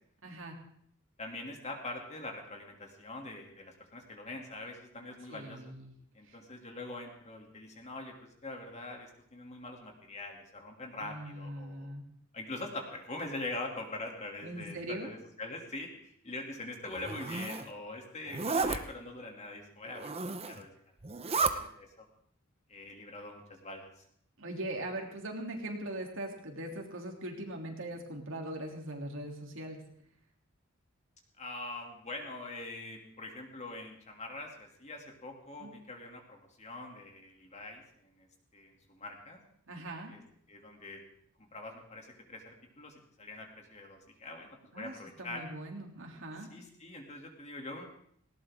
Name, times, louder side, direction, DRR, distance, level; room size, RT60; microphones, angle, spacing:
voice 1, 0.2-0.6 5.3-5.9 6.3-6.4 11.0-12.0 14.4-15.1 24.4-29.8 35.6-35.7 39.7-40.1 44.7-44.9 45.2-46.5, right 1 dB, 65° right, 1 dB, 3.2 m, -40 dB
voice 2, 1.2-5.7 6.1-11.9 12.3-20.2 20.4-20.7 21.2-22.1 22.7-24.0 31.4-38.3 38.5-39.4 40.1-40.2 40.5-41.0 41.5-42.4 42.8-45.5 46.5-47.9, left 2 dB, 35° left, 2 dB, 2.8 m, -43 dB
Zipper (clothing), 16.9-17.7 18.3-18.8 19.9-20.6 21.0-21.5, right 4 dB, 30° right, 0.9 m, -32 dB
19.0 x 18.0 x 3.8 m, 0.66 s
head